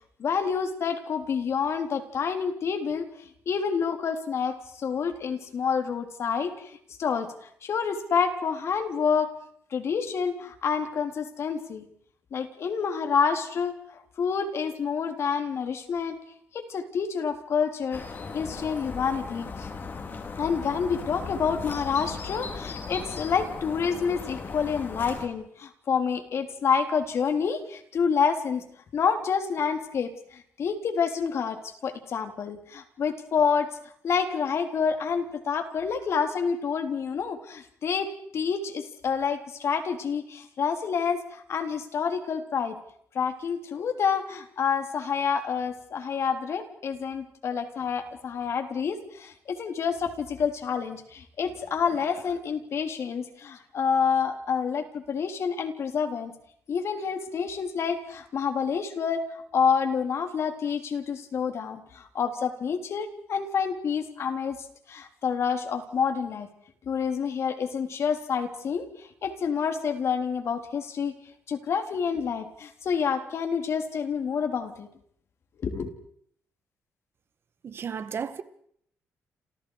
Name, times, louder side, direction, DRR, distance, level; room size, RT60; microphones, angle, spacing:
voice 1, 0.2-3.1 3.5-7.3 7.6-9.3 9.7-11.9 12.3-13.7 14.2-16.2 16.5-18.0 18.3-19.7 20.4-28.6 28.9-33.7 34.0-38.1 38.3-42.8 43.1-56.3 56.7-59.2 59.5-64.6 64.9-66.5 66.9-71.1 71.5-74.9 75.6-75.9, left 6 dB, 60° left, 3.6 m, -28 dB
sound 1, 17.9-25.3, left 4 dB, 40° left, 4.0 m, -37 dB
voice 2, 77.6-78.4, right 7 dB, 50° right, 1.9 m, -33 dB
29.5 x 27.5 x 5.0 m
cardioid pair, 100°, 5 cm